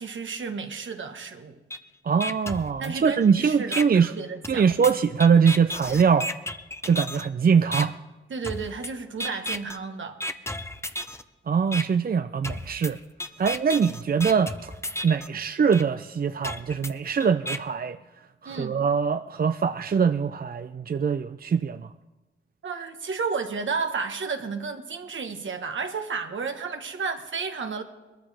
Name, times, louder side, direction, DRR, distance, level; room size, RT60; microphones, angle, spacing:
voice 1, 0.0-1.6 2.8-4.6 8.3-10.2 18.4-18.8 22.6-27.8, right 5 dB, 75° right, 1.4 m, -32 dB
sound 1, 1.7-1.8 2.2-3.2 3.7-3.8 4.4-7.3 7.7-7.8 8.4-8.9 9.2-9.8 10.2-11.2 11.7-11.8 12.4-15.3 15.7-15.8 16.4-17.6, left 1 dB, 15° left, 0.8 m, -33 dB
voice 2, 2.0-4.1 4.5-6.3 6.8-7.9 11.5-13.0 13.4-14.7 15.0-18.0 18.4-21.9, right 6 dB, 50° right, 0.5 m, -23 dB
21.0 x 14.0 x 3.5 m
cardioid pair, 50°, 20 cm